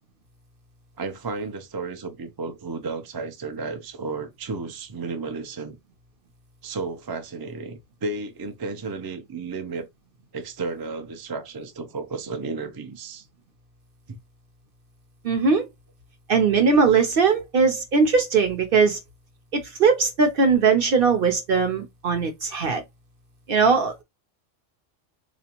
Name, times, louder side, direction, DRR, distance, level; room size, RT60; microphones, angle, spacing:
voice 1, 1.0-5.8 6.6-9.9 10.3-13.2 14.1-14.2, right 3 dB, 35° right, 0.4 m, -33 dB
voice 2, 15.2-15.7 16.3-19.0 19.8-22.8 23.5-24.0, right 5 dB, 50° right, 0.8 m, -20 dB
4.0 x 2.4 x 2.9 m
omnidirectional pair, 1.3 m